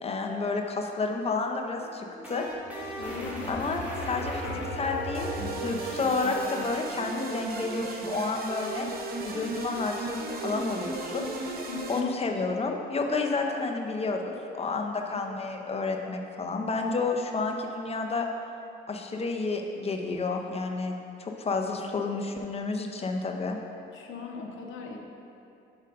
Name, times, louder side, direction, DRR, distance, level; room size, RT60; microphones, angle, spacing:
voice 1, 0.0-2.5 3.5-8.9 9.2-11.6 11.9-18.3 18.9-23.6, left 3 dB, 30° left, 3 dB, 0.6 m, -30 dB
sound 1, 1.8-6.8, equal, 10° right, 1.4 m, -36 dB
voice 2, 2.9-3.5 4.2-4.3 11.7-12.1 15.3-15.4 23.9-25.0, left 5 dB, 75° left, 1 dB, 0.7 m, -39 dB
sound 2, 5.1-12.0, right 2 dB, 50° right, 0.7 m, -36 dB
5.2 x 4.0 x 5.4 m, 2.6 s
cardioid pair, 90°, 20 cm